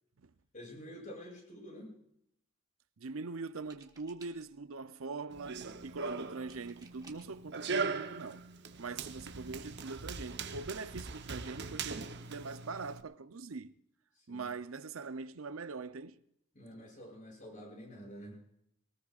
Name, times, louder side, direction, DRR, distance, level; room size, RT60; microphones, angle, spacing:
voice 1, 0.5-2.0 8.9-9.0 14.1-14.4 16.5-18.4, equal, 40° left, 7.5 m, -48 dB
voice 2, 3.0-8.5 8.8-12.0 12.3-13.7 14.3-16.2, right 4 dB, 85° right, 0.7 m, -42 dB
sound 1, 3.6-4.7 6.5-7.4 8.4-8.5 8.8-9.1, right 4 dB, 20° right, 1.4 m, -59 dB
Run, 5.3-13.0, right 4 dB, 55° right, 0.9 m, -40 dB
22.5 x 19.0 x 2.5 m
head